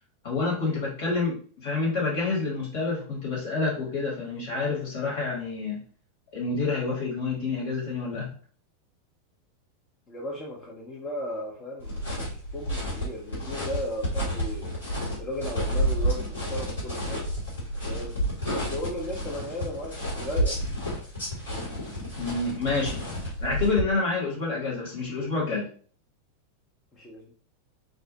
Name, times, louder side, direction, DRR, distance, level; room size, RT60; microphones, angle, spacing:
voice 1, 0.2-5.8 6.3-8.3 22.1-23.0 23.4-25.7, left 3 dB, 50° left, -3 dB, 1.3 m, -28 dB
voice 2, 10.1-14.8 15.2-17.3 17.9-18.2 18.5-20.6 26.9-27.3, left 1 dB, 25° left, -4 dB, 0.6 m, -36 dB
sound 1, 11.8-23.8, equal, 70° left, 1.4 m, -30 dB
2.5 x 2.0 x 2.8 m, 0.42 s
figure-of-eight pair, 90°, 0 cm